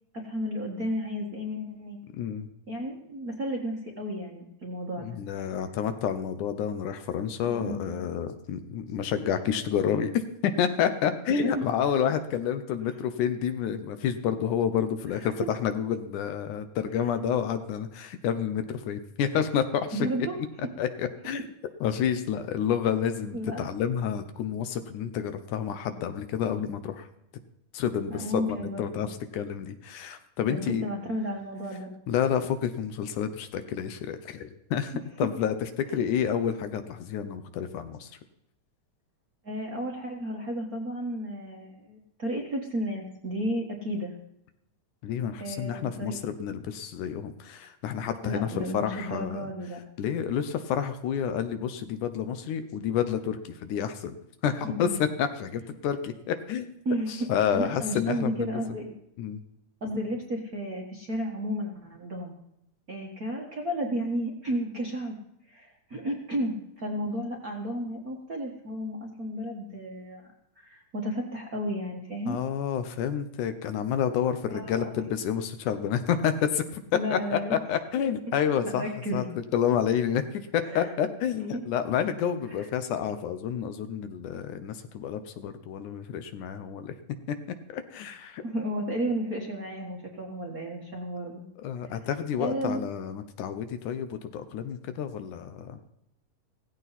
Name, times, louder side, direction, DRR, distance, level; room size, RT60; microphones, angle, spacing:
voice 1, 0.1-2.0 2.7-5.2 7.4-8.0 11.4-11.6 12.9-13.0 15.1-15.3 19.9-20.4 23.3-23.7 28.1-29.1 30.5-31.9 39.4-44.1 45.4-46.2 48.2-49.8 54.6-54.9 56.8-57.3 57.5-58.9 59.8-62.3 62.9-65.1 65.5-72.4 74.5-74.9 76.9-77.6 78.3-78.4 78.6-79.3 80.6-80.9 81.5-81.6 82.6-82.7 88.4-91.4 91.8-92.1 92.4-92.8, equal, 40° right, 0 dB, 1.3 m, -33 dB
voice 2, 2.1-2.5 5.0-20.1 20.8-21.4 21.8-27.1 27.7-30.9 32.1-38.1 45.0-49.5 50.0-56.7 57.1-58.6 59.2-59.4 72.3-76.8 77.1-78.9 79.1-79.2 79.5-87.0 87.7-88.4 91.6-95.9, left 8 dB, 75° left, 10 dB, 2.2 m, -29 dB
16.5 x 15.5 x 4.1 m, 0.81 s
omnidirectional pair, 3.9 m